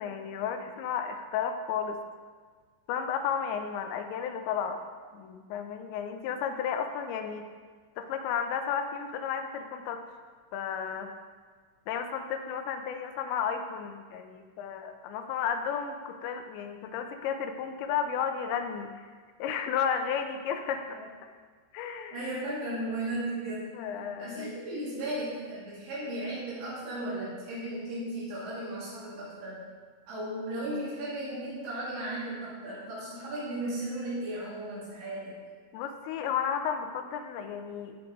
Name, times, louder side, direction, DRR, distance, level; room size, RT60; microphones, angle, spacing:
voice 1, 0.0-2.0 2.9-4.8 5.1-7.5 8.0-10.0 10.5-11.2 11.9-18.9 19.4-21.0 21.7-22.2 23.7-24.5 35.7-38.0, left 7 dB, 80° left, 6 dB, 2.9 m, -33 dB
voice 2, 22.1-23.8 24.2-29.7 30.1-35.4, right 1 dB, 75° right, -9 dB, 5.0 m, -35 dB
17.0 x 6.0 x 3.8 m, 1.5 s
omnidirectional pair, 5.3 m